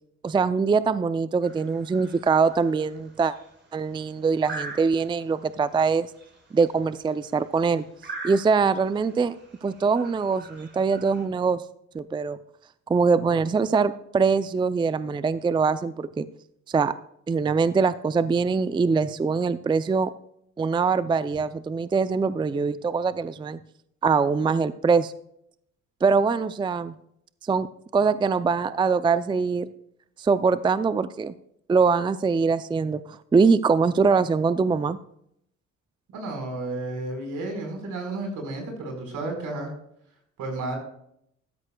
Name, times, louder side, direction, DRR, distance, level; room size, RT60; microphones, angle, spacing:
voice 1, 0.2-3.3 3.7-6.1 6.5-7.9 8.2-9.3 9.6-11.6 11.9-12.4 12.9-16.2 16.7-16.9 17.3-20.1 20.6-23.6 24.0-25.1 26.0-26.9 27.5-27.7 27.9-29.7 30.2-31.3 31.7-35.0, right 5 dB, 15° right, 14 dB, 0.4 m, -23 dB
sound 1, 1.4-11.2, right 3 dB, 35° right, 4.3 m, -44 dB
voice 2, 36.1-39.7 40.4-40.8, right 2 dB, 80° right, 3 dB, 4.4 m, -32 dB
13.0 x 13.0 x 2.3 m, 0.72 s
cardioid pair, 90°, 30 cm